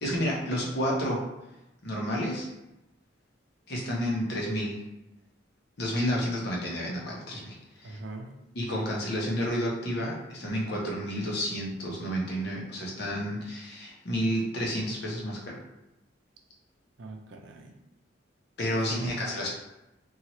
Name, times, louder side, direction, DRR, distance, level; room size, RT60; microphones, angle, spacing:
voice 1, 0.0-1.2 1.8-2.5 3.7-4.9 5.8-8.0 8.5-15.6 18.6-19.5, equal, 60° left, -3 dB, 0.8 m, -30 dB
voice 2, 7.8-8.3 17.0-17.8 18.9-19.5, right 3 dB, 70° right, 3 dB, 0.5 m, -41 dB
2.8 x 2.3 x 2.9 m, 0.93 s
head